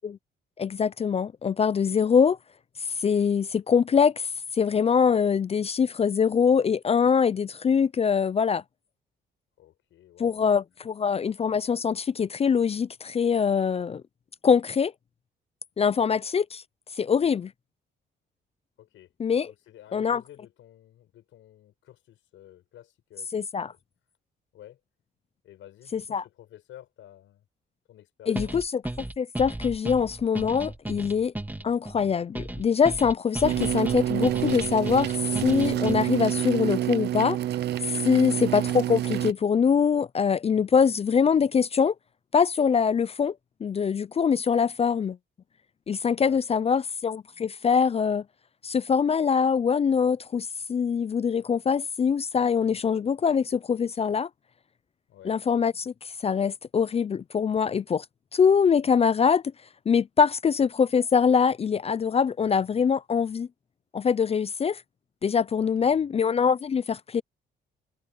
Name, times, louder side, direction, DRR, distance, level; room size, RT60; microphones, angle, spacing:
voice 1, 0.6-2.4 3.0-4.3 4.5-8.6 10.2-14.0 14.4-14.9 15.8-16.6 17.0-17.5 19.2-19.5 19.9-20.2 23.3-23.7 25.9-26.2 28.3-28.7 29.2-31.3 31.6-35.2 35.4-37.4 37.8-41.9 42.3-43.3 43.6-45.2 45.9-48.2 48.6-54.3 55.2-55.9 56.2-58.1 58.3-59.4 59.9-63.5 63.9-64.8 65.2-67.2, left 6 dB, 30° left, 0.4 m, -23 dB
voice 2, 9.6-10.4 15.8-16.1 18.8-19.1 19.5-23.8 24.5-24.8 25.4-27.4 27.9-28.5 38.1-38.4 46.2-46.6 55.1-55.4 65.5-66.1, left 12 dB, 80° left, 5.7 m, -51 dB
sound 1, 28.4-36.3, right 1 dB, 10° right, 2.3 m, -36 dB
sound 2, 33.4-39.3, right 12 dB, 60° right, 0.4 m, -28 dB
cardioid pair, 90°, 20 cm